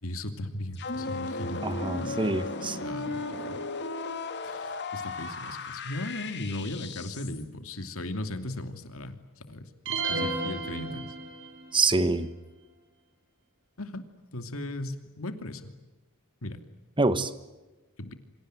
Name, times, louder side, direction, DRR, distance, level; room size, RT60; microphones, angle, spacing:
voice 1, 0.0-2.2 2.8-3.6 4.4-11.2 13.8-14.0 14.3-15.7 16.4-16.6 18.0-18.1, left 1 dB, 75° left, 2.8 m, -37 dB
sound 1, 0.7-7.4, left 3 dB, 55° left, 2.8 m, -35 dB
voice 2, 1.6-2.8 11.7-12.3 17.0-17.3, right 3 dB, 25° right, 1.3 m, -26 dB
sound 2, 9.9-11.7, right 3 dB, 65° right, 7.6 m, -32 dB
28.5 x 26.0 x 7.8 m
head